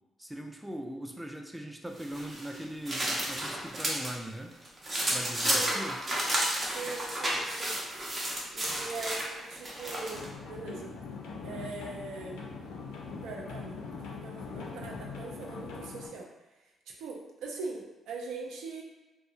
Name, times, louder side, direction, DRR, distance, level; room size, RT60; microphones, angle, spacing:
voice 1, 0.2-4.5 5.1-6.0, right 1 dB, 5° right, 3 dB, 0.3 m, -40 dB
sound 1, 2.0-4.1 4.5-10.3, right 1 dB, 35° right, 0.7 m, -32 dB
voice 2, 5.4-5.8 6.6-7.8 8.5-10.9 11.4-12.5 13.2-16.3 16.9-18.8, right 3 dB, 85° right, 0 dB, 0.4 m, -41 dB
sound 2, 10.1-16.1, left 4 dB, 90° left, 0.4 m, -42 dB
2.7 x 2.0 x 2.4 m, 1.0 s
supercardioid pair, 65°, 0 cm